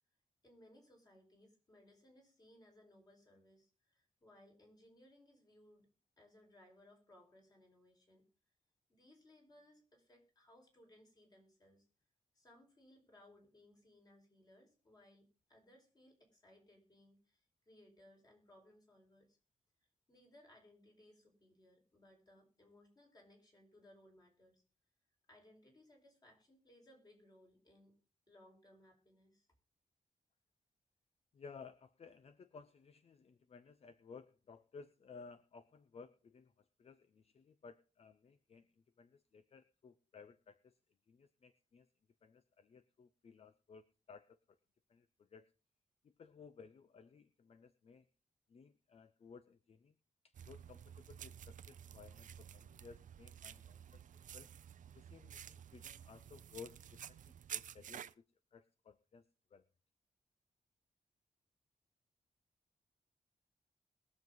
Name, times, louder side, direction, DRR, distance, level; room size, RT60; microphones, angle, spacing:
voice 1, 0.4-5.9 6.2-8.3 8.9-11.8 12.3-19.4 20.1-24.6 25.3-28.0 28.3-29.5, left 1 dB, 30° left, 1 dB, 4.9 m, -65 dB
voice 2, 31.3-40.8 41.1-41.9 42.2-44.6 44.9-45.5 46.0-48.1 48.5-49.9 50.2-54.0 54.3-54.5 54.9-58.2 58.5-59.2 59.5-59.6, left 5 dB, 50° left, 12 dB, 0.7 m, -58 dB
sound 1, 50.3-58.1, right 9 dB, 80° right, 0.6 m, -51 dB
21.5 x 7.4 x 3.9 m, 0.35 s
wide cardioid pair, 145°, 13 cm